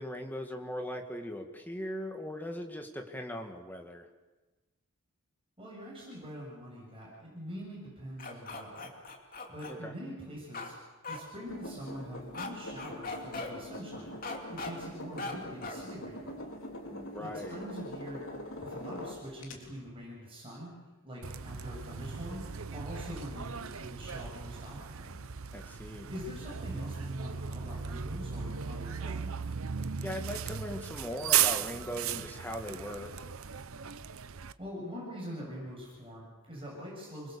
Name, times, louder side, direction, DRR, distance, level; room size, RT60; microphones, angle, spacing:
voice 1, 0.0-4.1 9.7-9.9 16.9-17.6 25.5-26.1 30.0-33.3, equal, 10° left, 3 dB, 2.1 m, -39 dB
voice 2, 5.6-8.9 9.5-10.7 11.1-14.2 14.5-16.4 17.2-18.2 18.6-20.7 21.0-22.4 22.7-25.1 26.1-29.3 34.6-37.4, equal, 25° right, -3 dB, 7.8 m, -44 dB
sound 1, 8.2-9.7 10.5-10.7 11.0-11.2 12.3-12.5 12.8-13.5 14.2-14.7 15.2-15.3 15.6-15.8, left 3 dB, 40° left, 2.9 m, -39 dB
sound 2, 11.5-19.5, left 1 dB, 65° left, 3.6 m, -43 dB
Bus, 21.2-34.5, right 8 dB, 70° right, 0.8 m, -36 dB
28.5 x 21.0 x 7.1 m, 1.2 s
head